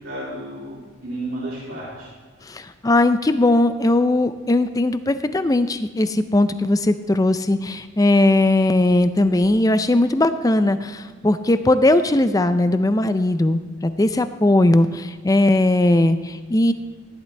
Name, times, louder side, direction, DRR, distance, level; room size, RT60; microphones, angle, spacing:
voice 1, 0.0-2.1, right 1 dB, 65° right, -9 dB, 3.3 m, -32 dB
voice 2, 2.4-16.7, left 2 dB, 15° left, 11 dB, 0.4 m, -19 dB
14.5 x 11.0 x 3.3 m, 1.5 s
head